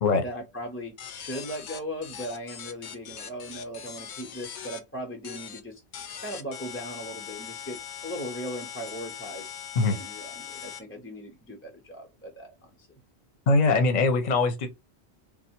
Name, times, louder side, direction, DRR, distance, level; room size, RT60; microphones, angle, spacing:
voice 1, 0.2-5.8 6.2-9.6 9.9-12.7, equal, 15° left, 0.5 m, -38 dB
sound 1, 1.0-4.8 5.2-5.6 5.9-10.8, left 8 dB, 85° left, 0.9 m, -41 dB
voice 2, 13.5-14.7, left 3 dB, 45° left, 0.8 m, -22 dB
3.5 x 2.1 x 4.3 m
omnidirectional pair, 1.1 m